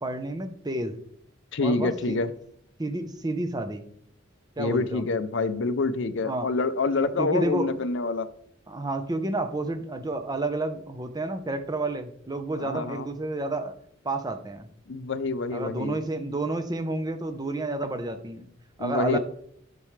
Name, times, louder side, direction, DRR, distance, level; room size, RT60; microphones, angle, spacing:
voice 1, 0.0-0.9 1.6-2.2 2.8-3.8 4.6-5.0 6.2-6.5 7.2-7.8 8.7-13.7 14.0-14.7 15.5-18.5 18.8-19.2, right 2 dB, 20° right, 8 dB, 0.9 m, -30 dB
voice 2, 1.5-2.3 4.6-8.3 12.6-13.1 14.9-16.0 18.8-19.2, left 3 dB, 65° left, 12 dB, 0.6 m, -27 dB
10.5 x 7.0 x 3.3 m, 0.67 s
head